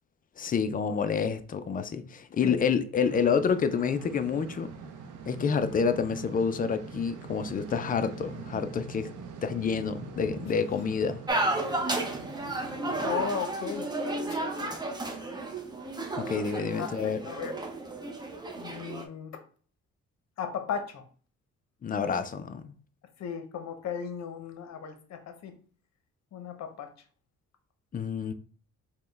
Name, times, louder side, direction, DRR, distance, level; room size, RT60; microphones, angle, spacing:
voice 1, 0.4-4.7 5.3-9.1 9.4-11.2 16.2-17.2 21.8-22.7 27.9-28.3, left 6 dB, 30° left, 0.4 m, -28 dB
sound 1, 3.0-13.3, right 5 dB, 80° right, 0.6 m, -44 dB
sound 2, 11.3-19.0, right 2 dB, 15° right, 0.6 m, -33 dB
voice 2, 13.0-14.7 16.8-17.5 18.6-19.4 20.4-21.0 23.2-25.5 26.3-26.9, left 7 dB, 60° left, 0.8 m, -36 dB
4.1 x 2.2 x 3.3 m
cardioid pair, 90°, 30 cm